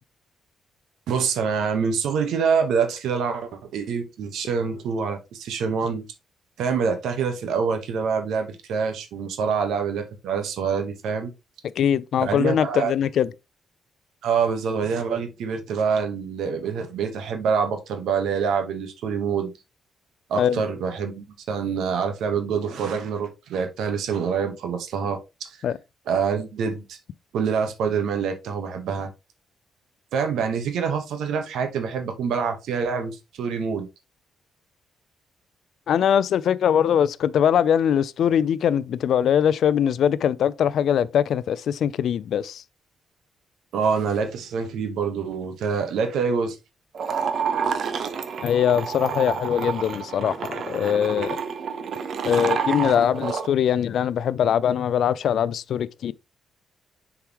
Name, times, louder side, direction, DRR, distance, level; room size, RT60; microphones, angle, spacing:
voice 1, 1.1-6.0 6.6-11.3 12.2-12.9 14.2-19.5 20.3-25.6 26.1-27.0 27.3-29.1 30.1-33.9 43.7-46.6, right 6 dB, 85° right, 1.1 m, -26 dB
voice 2, 11.8-13.3 20.4-20.6 25.6-25.8 35.9-42.6 48.4-51.4 52.2-56.1, left 9 dB, 70° left, 0.4 m, -22 dB
sound 1, 46.9-53.5, right 6 dB, 55° right, 0.8 m, -29 dB
6.9 x 4.8 x 3.0 m
cardioid pair, 125°, 0 cm